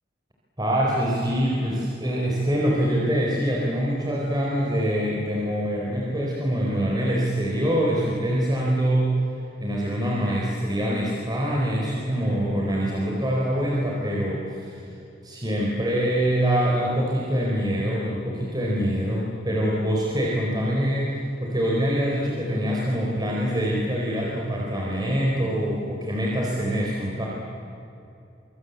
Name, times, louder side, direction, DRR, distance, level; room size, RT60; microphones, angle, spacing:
voice 1, 0.6-9.1 9.6-14.9 15.2-27.3, equal, 25° right, -4 dB, 4.4 m, -24 dB
26.5 x 25.0 x 8.3 m, 2.7 s
head